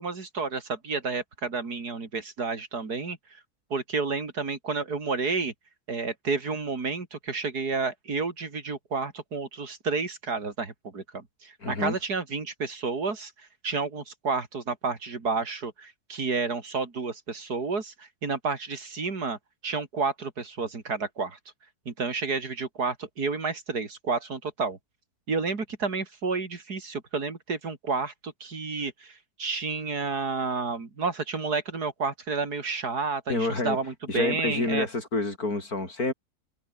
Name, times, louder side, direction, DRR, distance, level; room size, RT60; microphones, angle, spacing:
voice 1, 0.0-3.4 3.7-5.5 5.9-13.3 13.6-21.4 21.9-24.8 25.3-34.9, right 4 dB, 80° right, 3.6 m, -30 dB
voice 2, 11.6-12.0 33.3-33.8 34.1-36.1, left 2 dB, 70° left, 5.6 m, -28 dB
omnidirectional pair, 1.6 m